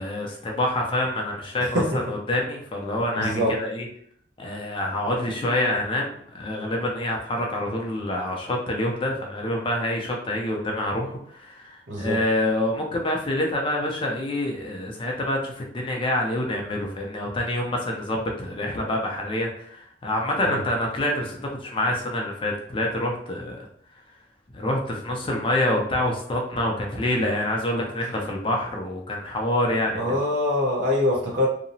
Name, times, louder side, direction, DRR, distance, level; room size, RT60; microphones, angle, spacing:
voice 1, 0.0-1.8 2.1-3.8 4.4-23.6 24.5-30.2, left 1 dB, 30° left, 0 dB, 0.4 m, -26 dB
voice 2, 3.2-3.5 11.9-12.2 20.5-20.6 29.9-31.5, left 1 dB, 65° right, -3 dB, 0.6 m, -23 dB
2.8 x 2.0 x 2.6 m, 0.63 s
head